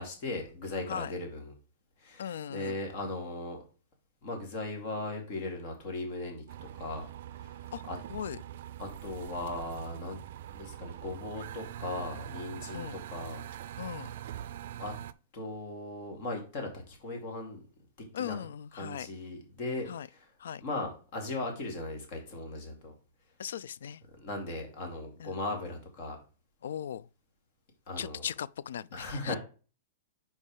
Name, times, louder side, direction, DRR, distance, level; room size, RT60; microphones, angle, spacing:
voice 1, 0.0-1.5 2.0-3.6 4.2-6.4 6.7-7.1 7.3-8.0 8.8-10.2 10.5-13.4 14.3-14.4 14.8-14.9 15.3-17.6 18.0-18.5 18.7-20.3 20.6-22.9 24.2-26.2 27.9-28.3 28.9-29.4, left 2 dB, 40° left, 2.3 m, -38 dB
voice 2, 2.2-2.7 7.7-7.8 8.1-8.4 12.7-13.0 13.8-14.1 18.1-19.1 19.9-20.1 20.4-20.6 23.4-24.0 25.2-25.3 26.6-27.0 28.0-29.4, left 9 dB, 80° left, 0.3 m, -38 dB
sound 1, 6.5-15.1, right 11 dB, 60° right, 0.4 m, -43 dB
5.5 x 4.5 x 4.9 m
hypercardioid pair, 160°, 0 cm